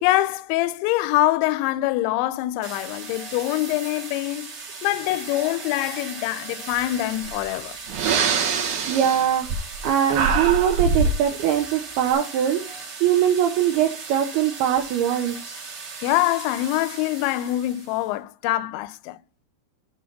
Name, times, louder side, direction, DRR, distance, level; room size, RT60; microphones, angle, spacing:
voice 1, 0.0-4.5 4.8-7.8 16.0-19.2, left 16 dB, 80° left, 2.7 m, -24 dB
sound 1, 2.6-18.1, right 4 dB, 50° right, 1.7 m, -38 dB
Breathing, 7.2-7.4 7.9-9.8 10.1-11.2, right 5 dB, 65° right, 2.1 m, -23 dB
voice 2, 8.9-9.5 9.8-12.6 13.0-15.6, right 10 dB, 85° right, 2.2 m, -22 dB
8.6 x 3.8 x 5.9 m
omnidirectional pair, 5.6 m